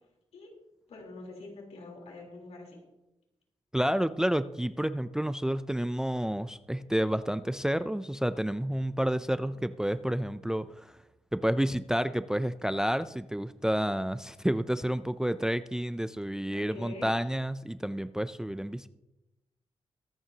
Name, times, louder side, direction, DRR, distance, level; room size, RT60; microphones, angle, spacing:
voice 1, 0.9-2.8 9.4-9.6 16.5-17.1, left 2 dB, 80° left, 0 dB, 3.6 m, -45 dB
voice 2, 3.7-11.0 11.3-18.9, equal, 5° right, 13 dB, 0.3 m, -30 dB
23.0 x 8.8 x 2.8 m, 0.96 s
wide cardioid pair, 135°, 11 cm